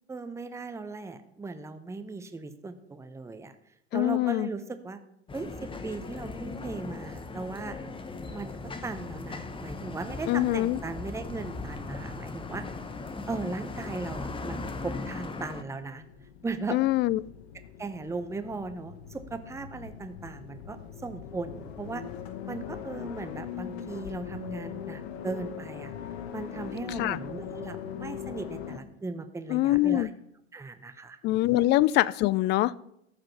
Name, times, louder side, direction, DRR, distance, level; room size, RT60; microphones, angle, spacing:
voice 1, 0.1-3.6 3.9-5.0 5.3-7.8 8.3-12.6 13.3-16.0 16.4-16.8 17.8-22.0 22.5-25.9 26.3-30.1 30.5-31.2 31.5-31.7, right 3 dB, 10° right, 9 dB, 0.8 m, -37 dB
voice 2, 3.9-4.5 10.3-10.8 16.7-17.2 27.0-27.2 29.5-30.1 31.2-32.7, left 16 dB, 35° left, 21 dB, 0.4 m, -24 dB
sound 1, 5.3-15.6, left 3 dB, 15° left, 1.0 m, -38 dB
sound 2, 15.3-28.8, left 9 dB, 65° left, 1.1 m, -41 dB
14.0 x 5.1 x 5.7 m, 0.77 s
hypercardioid pair, 85°, 33 cm